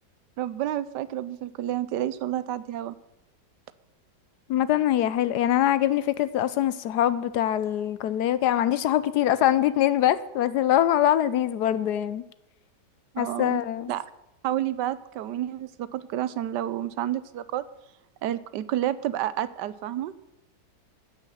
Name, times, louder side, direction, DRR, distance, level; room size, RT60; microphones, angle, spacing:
voice 1, 0.4-2.9 13.1-13.6 13.9-14.0 14.4-17.7 18.2-20.1, right 12 dB, 80° right, 16 dB, 1.2 m, -30 dB
voice 2, 4.5-12.2 13.2-13.9, left 12 dB, 75° left, 15 dB, 1.1 m, -23 dB
16.0 x 5.7 x 7.0 m, 0.91 s
omnidirectional pair, 1.9 m